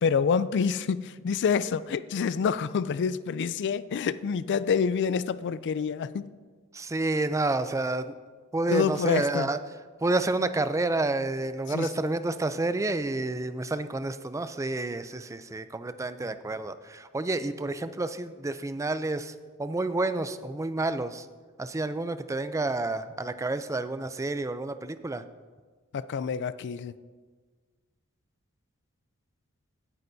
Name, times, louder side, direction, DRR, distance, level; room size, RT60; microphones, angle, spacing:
voice 1, 0.0-6.3 8.7-9.5 11.7-12.1 25.9-27.0, left 6 dB, 55° left, 0.4 m, -27 dB
voice 2, 6.7-8.1 8.5-9.6 10.0-19.3 19.6-21.3 21.6-25.2, right 2 dB, 15° right, 0.4 m, -29 dB
17.0 x 9.8 x 2.7 m
head